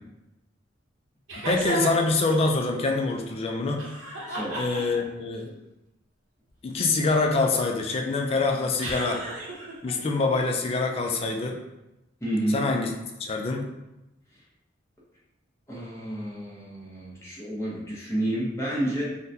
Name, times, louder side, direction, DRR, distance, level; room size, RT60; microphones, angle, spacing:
sound 1, 1.3-2.1 3.8-5.2 8.8-9.9, right 1 dB, 90° right, 0.9 m, -33 dB
voice 1, 1.4-3.9 4.5-5.5 6.6-9.2 9.8-11.6 12.5-12.9 13.2-13.7, left 3 dB, 30° left, 2 dB, 0.3 m, -25 dB
voice 2, 4.3-4.6 12.2-12.6 15.7-19.0, right 1 dB, 15° left, -7 dB, 0.8 m, -30 dB
3.8 x 2.2 x 2.6 m, 0.95 s
head